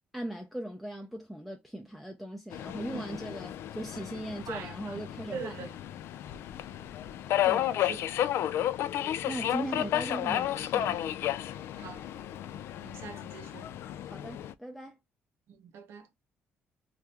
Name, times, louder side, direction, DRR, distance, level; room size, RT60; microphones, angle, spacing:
voice 1, 0.1-5.6 7.4-7.8 9.3-11.0 14.1-15.0, right 1 dB, ahead, 0.5 m, -39 dB
Subway metro underground, 2.5-14.5, left 12 dB, 70° left, 0.3 m, -32 dB
voice 2, 4.5-5.0 5.3-5.7 7.8-8.0 11.8-12.1 12.8-13.7 15.5-16.1, right 6 dB, 75° right, 0.8 m, -42 dB
2.7 x 2.4 x 3.3 m
cardioid pair, 120°, 4 cm